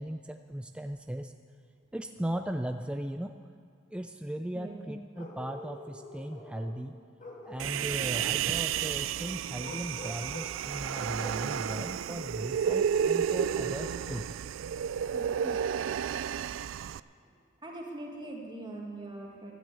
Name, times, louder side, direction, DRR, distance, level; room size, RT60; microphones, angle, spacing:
voice 1, 0.0-1.3 1.9-3.3 3.9-7.0 7.4-14.3 15.4-15.6, right 1 dB, 5° right, 6 dB, 0.4 m, -37 dB
Bark, 5.1-6.8 7.2-8.9 9.6-10.6 10.9-11.9 12.6-14.3, left 1 dB, 40° left, 2.2 m, -46 dB
Human voice, 7.6-17.0, right 8 dB, 75° right, 0.3 m, -31 dB
voice 2, 15.1-15.6 16.9-17.4 17.6-19.5, right 2 dB, 25° right, -1 dB, 1.7 m, -43 dB
12.5 x 10.5 x 8.0 m, 2.2 s
head